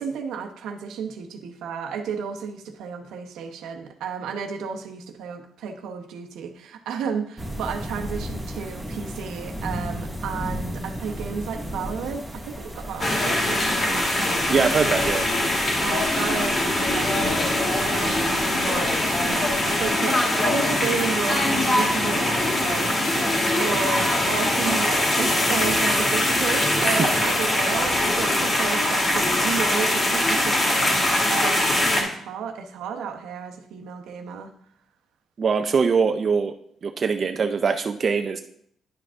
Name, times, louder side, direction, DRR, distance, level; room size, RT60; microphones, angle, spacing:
voice 1, 0.0-14.5 15.8-34.5, right 6 dB, 85° right, 5 dB, 0.9 m, -32 dB
sound 1, 7.4-19.9, equal, ahead, 1.7 m, -35 dB
sound 2, 13.0-32.0, left 1 dB, 35° left, 2.2 m, -22 dB
voice 2, 14.5-15.2 26.8-27.1 35.4-36.5 36.8-38.4, right 5 dB, 45° right, 7 dB, 0.5 m, -22 dB
10.5 x 4.9 x 3.6 m, 0.66 s
cardioid pair, 90°, 0 cm